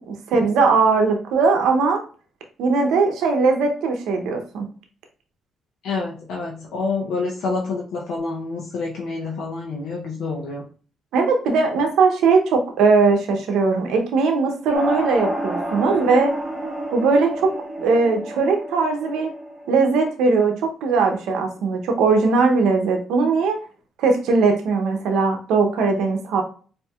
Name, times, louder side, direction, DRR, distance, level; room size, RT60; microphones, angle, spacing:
voice 1, 0.1-2.0 2.6-4.7 11.1-16.3 16.9-17.5 17.8-19.3 19.7-23.6 24.0-26.4, right 4 dB, 85° right, 4 dB, 0.6 m, -19 dB
voice 2, 5.8-10.6, left 3 dB, 80° left, -2 dB, 0.6 m, -28 dB
sound 1, 14.7-19.9, right 1 dB, 10° right, 1.1 m, -30 dB
4.3 x 2.6 x 2.3 m, 0.40 s
cardioid pair, 90°, 0 cm